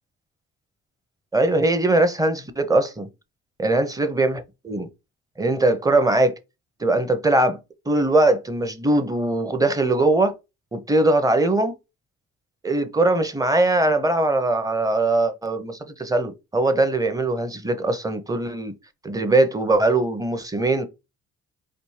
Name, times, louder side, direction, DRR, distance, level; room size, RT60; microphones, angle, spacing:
voice 1, 1.3-3.1 3.6-4.9 5.4-6.3 6.8-7.6 7.9-10.3 10.7-11.7 12.6-18.7 19.0-20.9, right 2 dB, 10° right, 0.7 m, -21 dB
4.2 x 2.7 x 3.2 m
cardioid pair, 90°, 30 cm